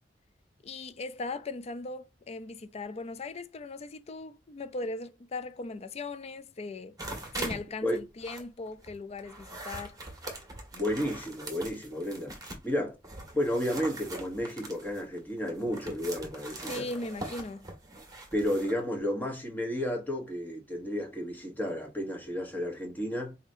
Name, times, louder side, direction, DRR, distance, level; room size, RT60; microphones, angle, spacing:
voice 1, 0.6-7.0 7.3-10.0 16.6-17.7, left 3 dB, 35° left, 0.4 m, -39 dB
sound 1, 7.0-7.6 8.0-12.7 13.0-18.8, right 2 dB, 20° right, 1.4 m, -42 dB
voice 2, 10.7-12.3 12.6-13.0 13.3-16.9 18.3-23.4, equal, 10° left, 1.1 m, -32 dB
4.8 x 2.8 x 2.7 m
head